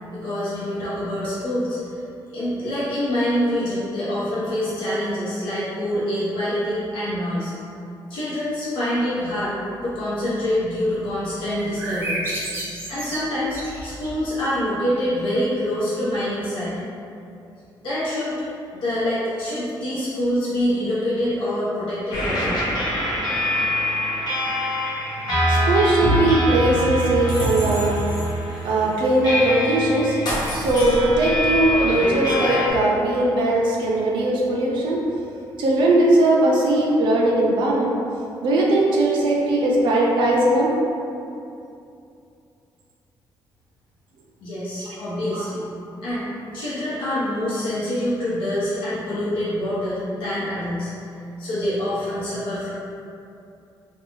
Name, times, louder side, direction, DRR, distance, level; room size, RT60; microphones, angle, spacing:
voice 1, 0.1-2.0 2.3-7.5 8.1-12.3 12.9-16.8 17.8-18.4 18.7-22.6 44.4-45.6 46.0-50.9 51.4-52.7, left 1 dB, 90° left, -11 dB, 0.8 m, -25 dB
sound 1, 11.5-14.3, right 1 dB, 30° right, 0.6 m, -31 dB
sound 2, 22.1-32.7, equal, 60° left, 0.7 m, -24 dB
voice 2, 25.5-28.0 28.6-30.2 30.5-35.0 35.6-37.9 38.4-40.7 44.8-45.0 45.3-45.4, right 1 dB, 85° right, -3 dB, 0.4 m, -19 dB
2.5 x 2.3 x 3.0 m, 2.6 s
cardioid pair, 125°, 8 cm